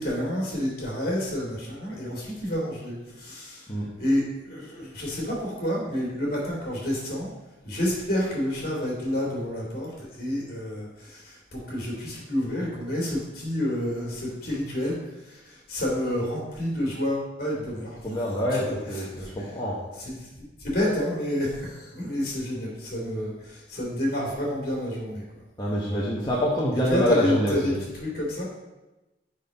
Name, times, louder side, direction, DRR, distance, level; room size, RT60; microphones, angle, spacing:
voice 1, 0.0-3.7 4.0-7.3 7.6-19.5 20.0-25.4 26.7-28.5, left 1 dB, 50° left, -3 dB, 2.8 m, -29 dB
voice 2, 18.0-19.8 25.6-27.8, equal, 20° left, -6 dB, 1.0 m, -26 dB
6.5 x 5.4 x 5.2 m, 1.0 s
head